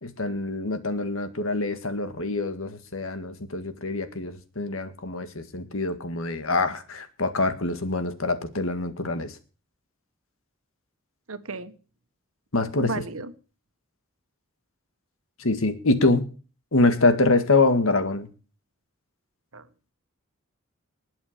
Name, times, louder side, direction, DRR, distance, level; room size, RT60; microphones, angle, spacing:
voice 1, 0.0-9.3 12.5-12.9 15.4-16.3 16.7-18.3, left 2 dB, 75° left, 10 dB, 1.9 m, -25 dB
voice 2, 11.3-11.7 12.8-13.3 19.5-19.7, right 3 dB, 85° right, 11 dB, 1.5 m, -34 dB
20.0 x 7.1 x 5.1 m, 0.36 s
head